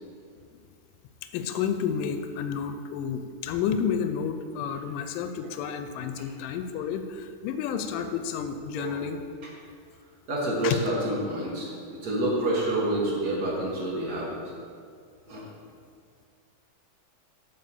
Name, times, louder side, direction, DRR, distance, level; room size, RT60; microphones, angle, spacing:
voice 1, 1.3-9.2 10.6-10.8, left 7 dB, 90° left, 8 dB, 2.2 m, -30 dB
voice 2, 10.3-11.7 12.0-14.4 15.3-15.4, right 1 dB, 50° right, -4 dB, 1.2 m, -28 dB
7.5 x 5.1 x 7.2 m, 2.2 s
omnidirectional pair, 3.8 m